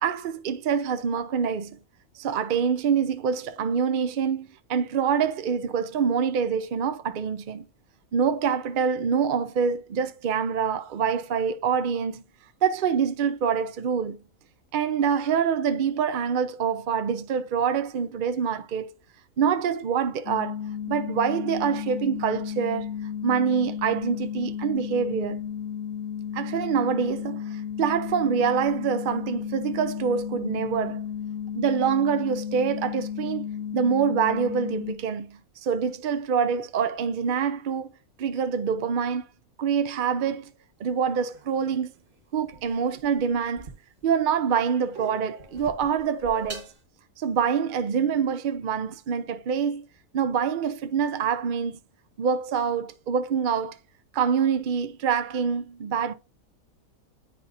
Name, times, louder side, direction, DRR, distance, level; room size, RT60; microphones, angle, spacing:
voice 1, 0.0-1.8 2.2-7.6 8.1-12.2 12.6-14.2 14.7-18.9 19.4-20.6 20.9-22.9 23.2-25.5 26.3-31.0 31.5-33.5 33.7-37.9 38.2-39.2 39.6-40.5 40.8-41.9 42.3-43.7 44.0-46.7 47.2-49.9 50.1-51.8 52.2-53.8 54.1-56.1, right 7 dB, 65° right, 0.5 m, -25 dB
sound 1, 20.3-35.0, left 8 dB, 65° left, 1.0 m, -33 dB
sound 2, 41.0-44.2 44.6-46.8, right 2 dB, 40° right, 1.4 m, -43 dB
9.5 x 4.2 x 2.5 m
omnidirectional pair, 1.5 m